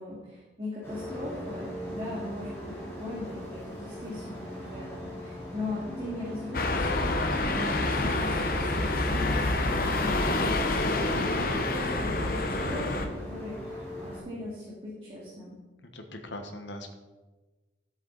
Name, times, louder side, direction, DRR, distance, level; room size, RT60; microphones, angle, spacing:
voice 1, 0.0-15.5, left 1 dB, 30° right, -6 dB, 2.4 m, -39 dB
sound 1, 0.8-14.2, equal, 15° left, 3.2 m, -41 dB
sound 2, 6.5-13.1, left 2 dB, 55° left, 1.0 m, -27 dB
voice 2, 15.9-16.9, left 1 dB, 80° left, 4 dB, 1.4 m, -40 dB
12.0 x 8.3 x 4.1 m, 1.2 s
head